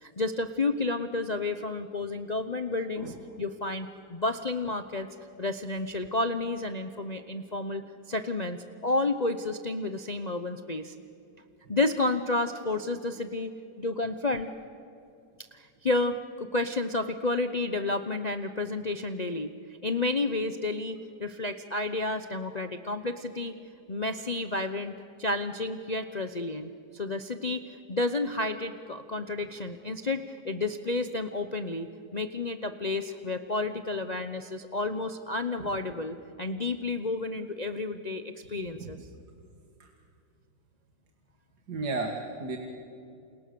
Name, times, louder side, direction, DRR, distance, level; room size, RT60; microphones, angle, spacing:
voice 1, 0.0-5.1 5.4-7.8 8.1-10.9 11.7-14.5 15.5-19.5 19.8-23.5 23.9-24.9 25.2-27.6 27.9-39.0, left 2 dB, 35° left, 8 dB, 0.7 m, -31 dB
voice 2, 41.7-42.6, right 3 dB, 60° right, 2 dB, 2.4 m, -33 dB
29.5 x 28.5 x 6.9 m, 2.5 s
omnidirectional pair, 1.9 m